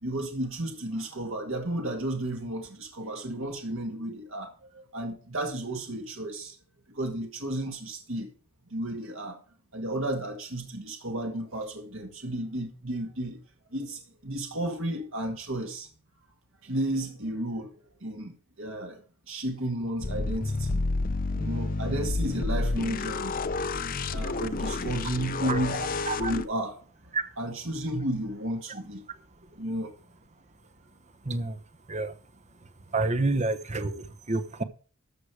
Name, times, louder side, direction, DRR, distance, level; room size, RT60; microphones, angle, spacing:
voice 1, 0.0-6.6 6.9-8.3 8.7-9.4 9.7-13.4 13.7-15.9 16.6-17.7 18.0-18.3 18.6-19.0 19.3-20.8 21.3-23.3 24.1-25.8 26.2-26.8 27.0-29.0 29.6-29.9, right 1 dB, 60° right, 1.9 m, -33 dB
sound 1, 20.0-26.4, left 3 dB, 40° left, 0.6 m, -30 dB
voice 2, 31.2-31.6 31.9-32.1 32.9-34.6, right 3 dB, 30° right, 0.9 m, -28 dB
13.0 x 6.5 x 4.8 m
head